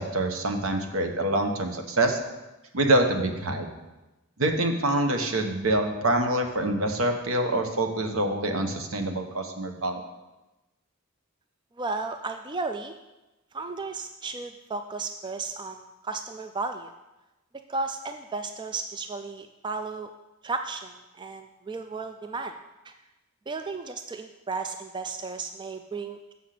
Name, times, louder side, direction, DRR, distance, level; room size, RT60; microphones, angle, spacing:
voice 1, 0.0-2.2 2.7-3.7 4.4-10.0, right 1 dB, 75° right, 5 dB, 1.1 m, -25 dB
voice 2, 11.8-12.9 13.5-16.9 17.7-20.1 20.4-20.9 21.2-22.5 22.9-23.0 23.5-26.3, right 3 dB, 20° right, 7 dB, 0.3 m, -34 dB
7.0 x 5.9 x 6.6 m, 1.0 s
head